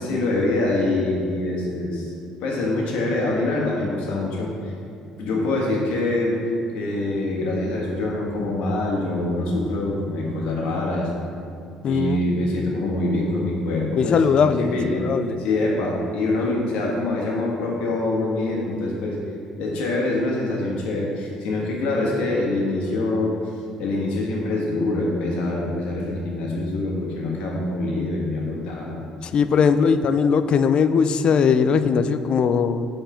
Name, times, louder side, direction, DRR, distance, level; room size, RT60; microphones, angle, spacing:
voice 1, 0.0-2.1 2.4-4.7 5.2-6.4 6.7-11.1 11.8-15.0 15.4-19.2 19.6-23.4 23.8-29.0, left 2 dB, 75° left, -2 dB, 1.5 m, -25 dB
voice 2, 11.8-12.2 14.0-15.4 29.2-32.9, left 6 dB, 50° left, 11 dB, 0.3 m, -20 dB
5.5 x 4.4 x 5.0 m, 2.5 s
cardioid pair, 95°, 2 cm